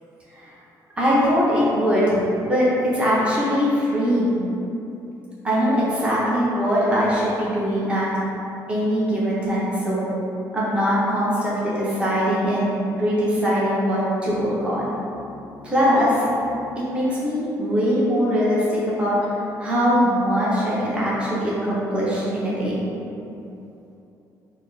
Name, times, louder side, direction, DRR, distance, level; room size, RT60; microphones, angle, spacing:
voice 1, 1.0-2.2 2.5-4.4 5.4-8.1 8.7-10.1 10.5-14.9 15.6-16.3 16.8-22.8, equal, 15° right, -8 dB, 0.9 m, -21 dB
voice 2, 14.8-15.8 16.4-17.0 23.5-24.0, left 4 dB, 40° left, -5 dB, 0.4 m, -48 dB
4.3 x 2.1 x 3.9 m, 2.8 s
cardioid pair, 135°, 8 cm